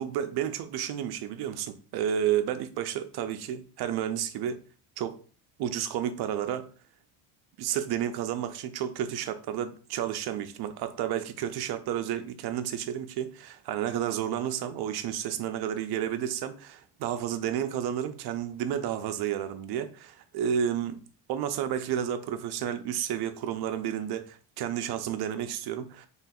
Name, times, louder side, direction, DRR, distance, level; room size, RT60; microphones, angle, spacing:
voice 1, 0.0-4.6 5.0-5.2 5.6-6.7 7.6-21.0 21.3-26.1, right 9 dB, 55° right, 0.5 m, -31 dB
4.2 x 3.1 x 2.4 m
cardioid pair, 165°, 47 cm